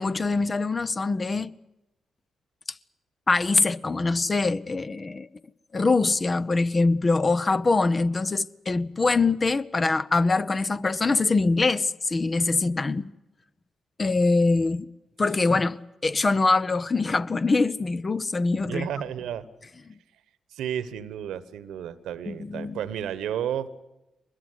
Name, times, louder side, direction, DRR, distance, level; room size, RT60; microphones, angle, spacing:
voice 1, 0.0-1.5 3.3-5.3 5.7-13.1 14.0-14.9 15.2-15.8 16.0-18.9 22.3-22.8, left 3 dB, 35° left, 0.9 m, -23 dB
voice 2, 18.6-19.5 20.5-23.8, right 9 dB, 75° right, 1.2 m, -32 dB
23.0 x 21.0 x 8.2 m
hypercardioid pair, 40°, 0 cm